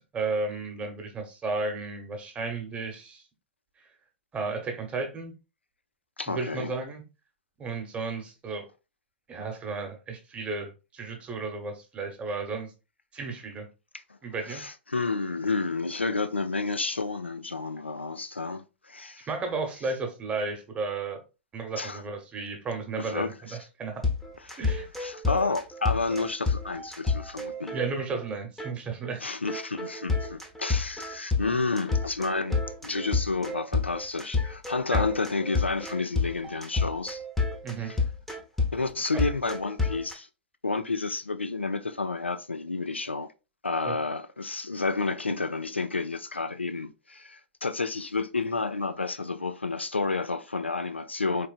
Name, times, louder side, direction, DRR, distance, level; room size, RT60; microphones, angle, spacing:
voice 1, 0.1-3.2 4.3-5.3 6.3-7.0 7.6-8.7 9.3-12.7 13.1-13.7 14.2-14.6 19.3-21.2 21.5-24.0 24.6-24.9 27.7-29.2 34.9-35.0 37.6-37.9 43.8-44.0, right 3 dB, 20° right, 1.0 m, -33 dB
voice 2, 6.2-6.7 14.5-19.3 21.8-22.0 23.0-23.6 24.5-24.7 25.0-27.8 29.2-37.2 37.9-38.0 38.7-40.3 40.6-43.3 43.6-51.5, left 3 dB, 85° left, 0.4 m, -30 dB
sound 1, 24.0-28.3 28.6-28.7 29.0-29.1 29.5-40.1, left 4 dB, 5° left, 0.8 m, -29 dB
4.3 x 3.2 x 2.4 m
figure-of-eight pair, 100°, 6 cm